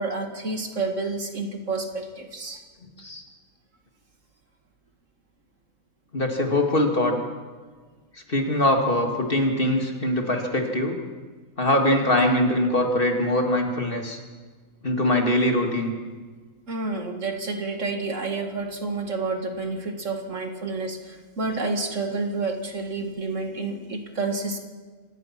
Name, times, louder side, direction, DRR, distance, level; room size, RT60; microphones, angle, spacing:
voice 1, 0.0-2.6 16.7-24.6, right 3 dB, 60° right, 4 dB, 2.4 m, -29 dB
voice 2, 6.1-7.2 8.3-11.0 11.6-14.2 14.8-15.9, left 1 dB, 40° left, 2 dB, 2.6 m, -22 dB
27.0 x 17.5 x 6.0 m, 1.4 s
omnidirectional pair, 1.5 m